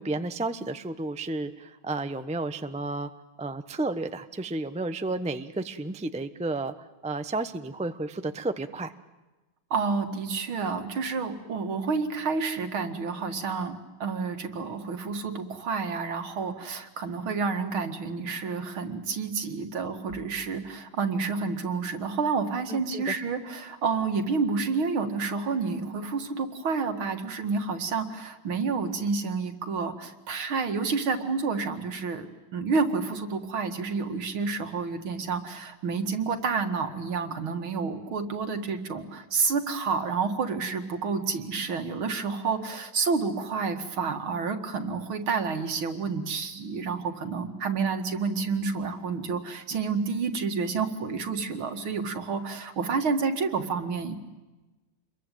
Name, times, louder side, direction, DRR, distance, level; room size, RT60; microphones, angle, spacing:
voice 1, 0.0-3.1 3.4-8.9 22.7-23.2, right 2 dB, 10° right, 9 dB, 0.4 m, -32 dB
voice 2, 9.7-13.7 14.0-54.4, right 4 dB, 70° right, 6 dB, 2.9 m, -29 dB
28.0 x 23.0 x 9.3 m, 1.1 s
omnidirectional pair, 2.3 m